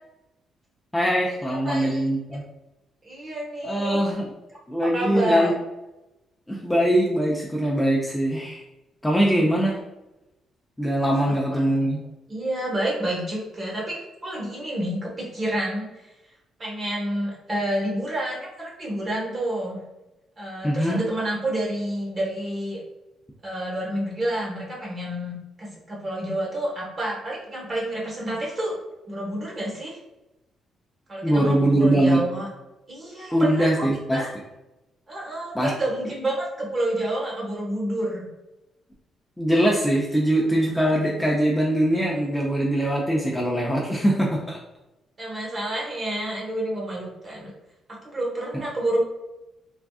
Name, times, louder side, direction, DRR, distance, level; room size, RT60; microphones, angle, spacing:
voice 1, 0.9-2.4 3.6-4.3 4.7-5.5 6.5-8.6 9.0-9.8 10.8-12.0 20.6-21.0 31.2-32.2 33.3-34.2 35.5-35.7 39.4-44.6, right 1 dB, 5° left, -3 dB, 0.5 m, -22 dB
voice 2, 1.5-2.0 2.3-2.4 3.0-4.0 4.8-5.5 11.3-11.6 12.3-16.1 16.6-19.8 20.4-22.8 23.4-28.8 29.1-30.0 31.1-32.5 32.9-34.3 35.1-38.2 41.1-41.2 45.2-47.5 48.0-49.0, right 1 dB, 35° right, -4 dB, 1.3 m, -29 dB
3.5 x 2.3 x 2.3 m, 0.98 s
cardioid pair, 90°, 0 cm